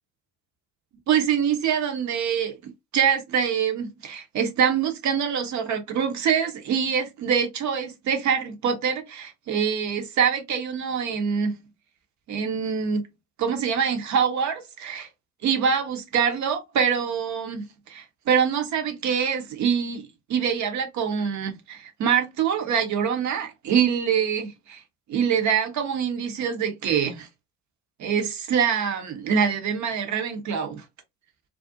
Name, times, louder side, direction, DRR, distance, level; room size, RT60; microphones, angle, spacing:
voice 1, 1.1-2.6 2.9-11.5 12.3-13.1 13.4-15.1 15.4-24.8 25.1-27.3 28.0-30.8, right 7 dB, 35° right, 0.7 m, -25 dB
2.4 x 2.0 x 2.6 m
figure-of-eight pair, 65°, 50 cm